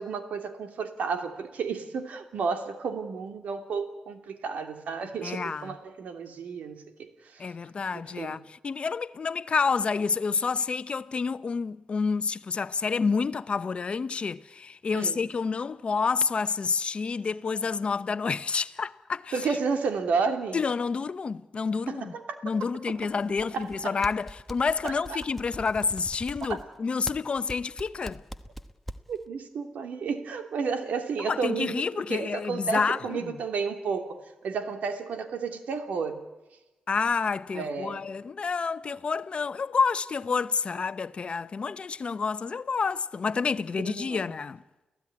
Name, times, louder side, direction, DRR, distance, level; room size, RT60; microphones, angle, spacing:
voice 1, 0.0-7.4 8.1-8.4 14.9-15.2 19.3-20.6 21.9-22.4 23.5-24.0 24.8-25.2 26.5-26.6 29.1-31.7 32.1-36.2 37.5-38.0 43.8-44.2, right 5 dB, 80° right, 2.8 m, -32 dB
voice 2, 5.2-5.8 7.4-19.3 20.5-22.1 22.4-28.2 31.2-33.4 36.9-44.6, left 5 dB, 45° left, 0.9 m, -29 dB
sound 1, 22.9-23.8 24.0-29.2, equal, 5° left, 1.2 m, -42 dB
30.0 x 15.5 x 9.7 m
cardioid pair, 85°, 3 cm